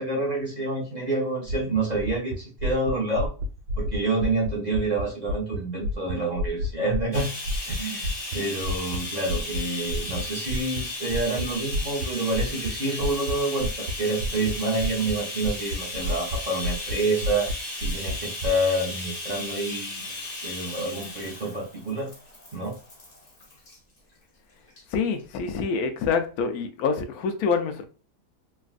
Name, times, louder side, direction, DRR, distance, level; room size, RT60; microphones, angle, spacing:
voice 1, 0.0-3.3 3.8-7.3 7.7-17.5 17.8-22.1 22.5-22.8, right 2 dB, 70° right, 0.4 m, -28 dB
sound 1, 1.5-5.6 5.8-9.0 9.2-9.6 9.9-10.2 10.5-10.8 11.1-11.5 11.7-12.1 12.3-12.7 13.0-13.3 13.6-13.9 14.2-14.5 14.8-15.1 15.4-16.4 16.6-16.9 17.2-17.5 17.8-18.5, equal, 90° right, 1.4 m, -29 dB
Bathtub (filling or washing), 7.1-23.8 24.7-24.8 25.2-25.3, left 2 dB, 40° left, 0.5 m, -35 dB
voice 2, 24.9-27.8, left 5 dB, 70° left, 0.9 m, -26 dB
3.3 x 2.4 x 2.4 m
omnidirectional pair, 1.8 m